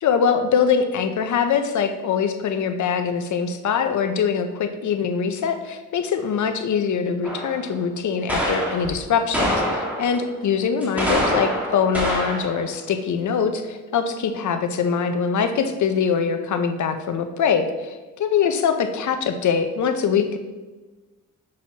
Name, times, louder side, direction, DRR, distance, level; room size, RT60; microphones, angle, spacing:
voice 1, 0.0-20.4, left 6 dB, 60° left, 8 dB, 0.6 m, -23 dB
sound 1, 7.2-7.7 8.3-8.9 9.3-10.2 10.8-12.6, equal, 5° right, 1.6 m, -25 dB
6.2 x 5.7 x 2.8 m, 1.3 s
cardioid pair, 105°, 34 cm